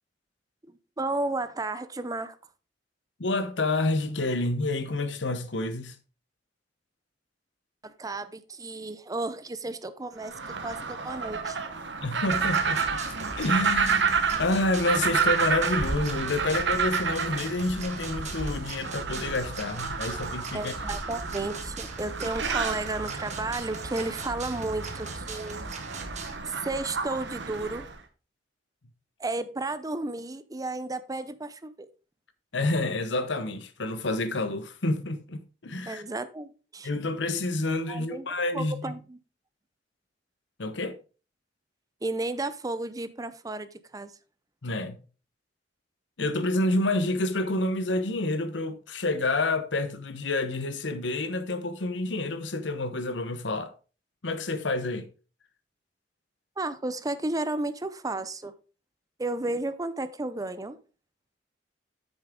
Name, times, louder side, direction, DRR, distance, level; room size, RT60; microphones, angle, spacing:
voice 1, 1.0-2.4 7.8-10.3 10.6-11.6 20.5-25.6 26.4-27.9 29.2-31.9 35.9-36.9 37.9-38.3 38.5-39.2 42.0-44.1 56.6-58.5 59.2-60.8, right 2 dB, 20° right, 0.6 m, -33 dB
voice 2, 3.2-6.0 12.0-13.0 13.4-20.7 32.5-36.0 36.8-38.9 40.6-41.0 44.6-45.0 46.2-53.7 54.2-55.1, left 2 dB, 80° left, 1.0 m, -28 dB
sound 1, 10.2-28.0, right 5 dB, 75° right, 1.1 m, -30 dB
sound 2, 12.3-26.3, right 3 dB, 40° right, 1.5 m, -40 dB
8.5 x 6.3 x 3.7 m
head